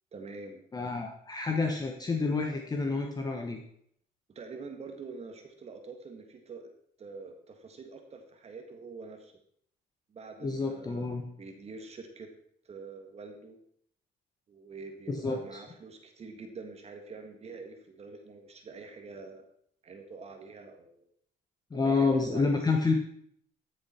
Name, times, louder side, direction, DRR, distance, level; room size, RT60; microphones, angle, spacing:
voice 1, 0.1-0.6 4.3-6.7 7.0-9.3 10.1-12.3 12.6-13.6 14.5-19.5 19.8-21.0 21.7-22.8, right 4 dB, 40° right, 5 dB, 1.6 m, -45 dB
voice 2, 0.7-3.6 10.4-11.2 15.1-15.6 21.7-22.9, left 4 dB, 25° left, 3 dB, 1.2 m, -29 dB
13.5 x 6.9 x 4.4 m, 0.67 s
cardioid pair, 110°, 17 cm